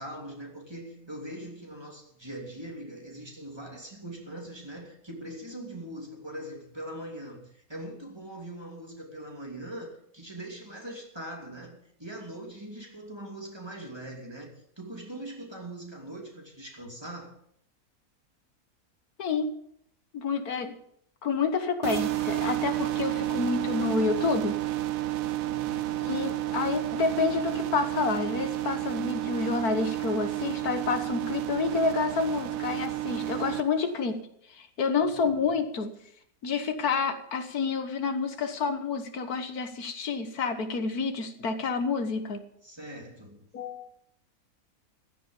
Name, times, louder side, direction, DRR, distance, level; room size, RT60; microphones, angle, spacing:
voice 1, 0.0-17.3 25.4-26.0 35.0-35.4 42.6-43.4, right 1 dB, 15° right, 3.0 m, -42 dB
voice 2, 19.2-19.6 20.1-20.8 21.2-24.6 26.0-34.2 34.5-35.9 36.4-42.4 43.5-43.9, left 4 dB, 85° left, 1.8 m, -29 dB
sound 1, 21.8-33.6, right 15 dB, 70° right, 1.1 m, -31 dB
15.5 x 10.5 x 5.3 m
omnidirectional pair, 1.6 m